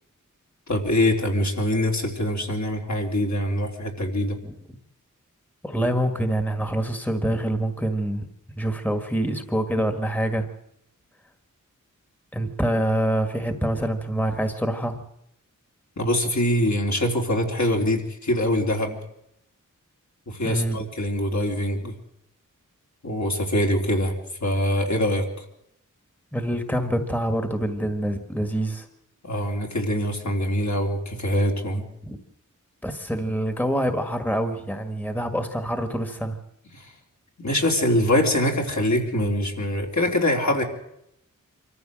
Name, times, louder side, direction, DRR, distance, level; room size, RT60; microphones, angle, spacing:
voice 1, 0.7-4.4 16.0-19.0 20.3-21.9 23.0-24.1 24.4-25.3 29.2-31.8 36.7-36.9 37.4-40.6, left 1 dB, 60° left, 0 dB, 3.7 m, -24 dB
voice 2, 5.6-8.3 8.6-10.5 12.3-15.0 20.4-20.8 26.3-28.9 32.0-32.2 32.8-36.4, right 1 dB, 5° left, 7 dB, 1.8 m, -26 dB
25.5 x 14.5 x 7.7 m, 0.80 s
wide cardioid pair, 90°, 32 cm